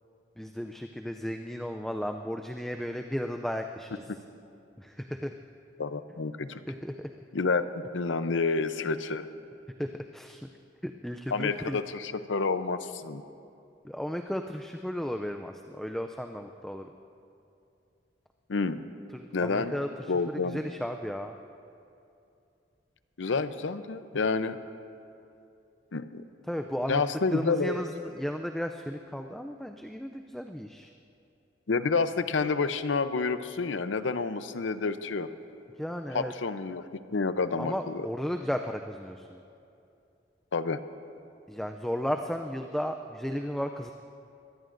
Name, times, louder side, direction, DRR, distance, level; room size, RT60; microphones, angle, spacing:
voice 1, 0.4-4.0 4.8-5.3 6.7-7.1 9.8-10.5 10.8-11.8 13.8-16.9 19.1-19.9 20.3-21.4 26.5-27.0 27.3-30.9 35.8-36.3 37.6-39.4 41.5-43.9, equal, ahead, 4 dB, 0.3 m, -34 dB
voice 2, 5.8-6.6 7.3-9.3 11.3-13.2 18.5-18.8 19.3-19.7 20.1-20.6 23.2-24.6 25.9-26.2 26.9-27.8 31.7-35.3 36.1-38.1 40.5-40.8, left 4 dB, 90° left, 11 dB, 0.6 m, -29 dB
24.0 x 18.5 x 2.6 m, 2.6 s
head